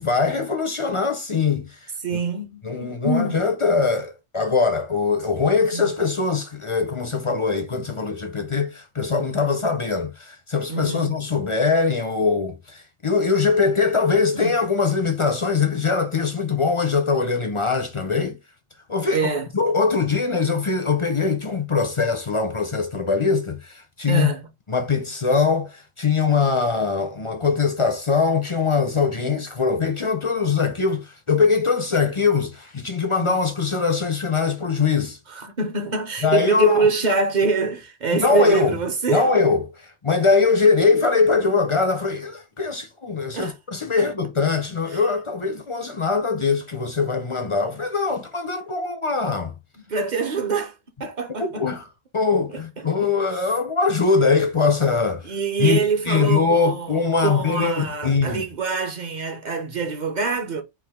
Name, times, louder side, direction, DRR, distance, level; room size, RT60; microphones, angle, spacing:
voice 1, 0.0-2.2 2.6-18.4 18.9-19.3 19.5-24.3 24.7-35.2 36.2-36.9 38.1-38.7 39.1-49.5 51.4-51.9 52.1-55.3 55.6-55.8 56.1-58.4, left 4 dB, 35° left, 0.5 m, -22 dB
voice 2, 2.0-3.4 5.7-5.8 10.7-11.1 14.3-14.5 19.1-19.5 24.1-24.5 33.2-33.3 35.3-39.3 43.3-43.5 44.9-45.0 49.9-50.7 51.0-51.6 52.5-52.6 53.0-53.4 55.2-60.6, right 5 dB, 40° right, 0.9 m, -25 dB
4.8 x 2.5 x 3.5 m
omnidirectional pair, 1.2 m